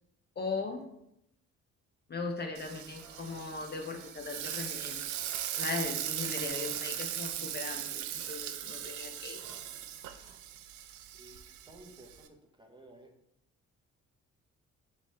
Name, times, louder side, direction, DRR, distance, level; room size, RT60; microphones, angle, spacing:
voice 1, 0.4-0.8 2.1-5.0 5.5-9.4 10.2-10.3, left 4 dB, 35° left, 4 dB, 0.6 m, -38 dB
Frying (food), 2.6-12.3, right 11 dB, 80° right, 0.5 m, -39 dB
sound 1, 3.0-10.4, right 3 dB, 45° right, 1.3 m, -57 dB
voice 2, 11.2-13.1, right 1 dB, 15° right, 2 dB, 0.7 m, -55 dB
3.8 x 3.2 x 4.1 m, 0.78 s
cardioid pair, 90°, 30 cm